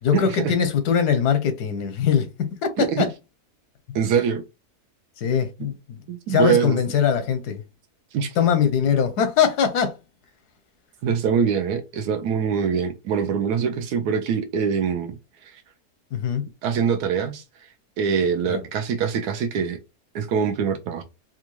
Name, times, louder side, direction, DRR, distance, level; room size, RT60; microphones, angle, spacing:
voice 1, 0.0-3.1 5.2-6.0 6.3-7.6 8.3-10.0 16.1-16.5 18.5-18.6, left 7 dB, 85° left, 1.4 m, -22 dB
voice 2, 3.9-4.4 5.6-5.7 6.1-6.8 8.1-8.3 11.0-15.1 16.6-17.4 18.0-19.8 20.1-21.0, right 6 dB, 85° right, 1.1 m, -23 dB
4.3 x 2.4 x 3.0 m
omnidirectional pair, 1.6 m